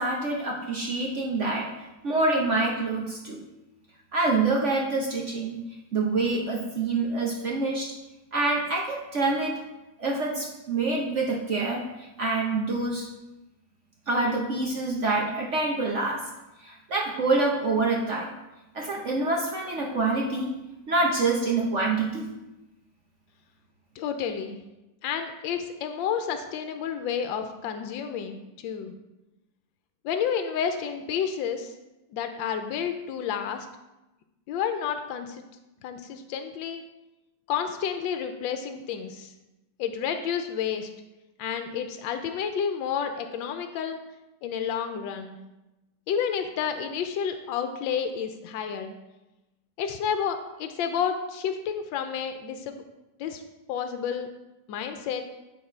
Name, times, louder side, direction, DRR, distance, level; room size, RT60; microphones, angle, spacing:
voice 1, 0.0-1.7 2.0-3.4 4.1-5.6 5.9-7.9 8.3-9.6 10.0-13.1 14.1-16.2 16.6-18.3 18.7-20.5 20.9-22.3, right 3 dB, 55° right, -1 dB, 0.8 m, -26 dB
voice 2, 24.0-24.6 25.0-28.9 30.0-31.7 32.1-33.7 34.5-35.4 35.8-36.8 37.5-39.3 39.8-40.9 41.4-44.0 44.4-45.4 46.1-48.9 49.8-52.8 53.2-53.4 53.7-54.3 54.7-55.2, left 7 dB, 85° left, 7 dB, 1.3 m, -30 dB
8.6 x 4.1 x 4.4 m, 1.0 s
omnidirectional pair, 2.0 m